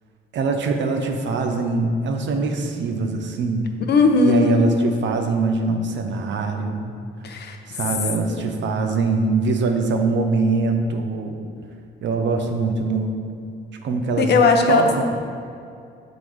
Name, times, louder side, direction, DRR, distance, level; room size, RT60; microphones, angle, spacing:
voice 1, 0.3-3.7 4.2-7.0 7.7-11.4 12.0-13.2 13.8-14.3 14.7-15.0, right 3 dB, 65° right, 4 dB, 0.8 m, -23 dB
voice 2, 3.9-4.7 7.2-7.6 8.3-8.4 14.2-15.0, left 3 dB, 55° left, 4 dB, 0.8 m, -17 dB
7.0 x 4.1 x 4.7 m, 2.4 s
cardioid pair, 90°, 20 cm